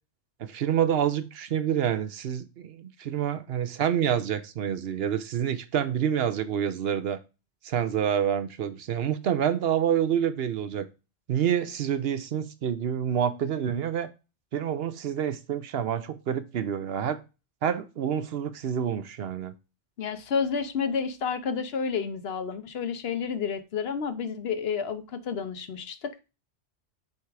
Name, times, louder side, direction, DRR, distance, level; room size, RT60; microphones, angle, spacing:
voice 1, 0.4-7.2 7.6-10.9 11.3-14.1 14.5-17.2 17.6-19.5, right 9 dB, 70° right, 0.9 m, -27 dB
voice 2, 20.0-26.2, left 6 dB, 70° left, 1.0 m, -30 dB
7.1 x 3.5 x 4.7 m
omnidirectional pair, 1.1 m